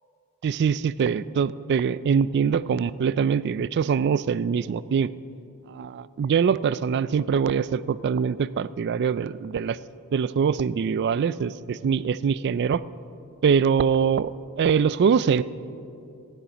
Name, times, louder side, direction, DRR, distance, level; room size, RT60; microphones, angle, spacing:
voice 1, 0.4-5.1 5.7-9.8 10.1-12.8 13.4-14.3 14.6-15.4, right 6 dB, 50° right, 17 dB, 0.3 m, -23 dB
15.5 x 11.0 x 5.0 m, 2.6 s
head